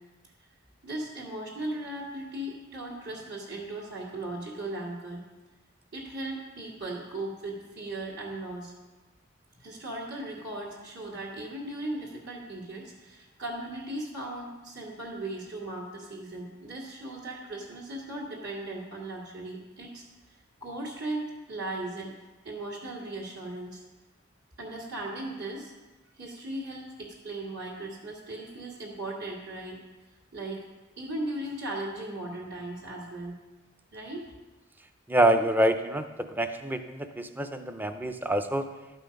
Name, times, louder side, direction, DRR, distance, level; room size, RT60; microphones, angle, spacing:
voice 1, 0.8-5.2 5.9-8.7 9.6-20.0 20.3-22.1 22.4-23.8 24.6-25.7 26.1-29.8 30.3-30.6 31.0-33.3 33.9-34.3, right 1 dB, 65° right, -7 dB, 2.0 m, -37 dB
voice 2, 35.1-36.0 36.3-38.7, right 1 dB, 10° right, 8 dB, 0.5 m, -26 dB
12.5 x 5.6 x 5.2 m, 1.1 s
head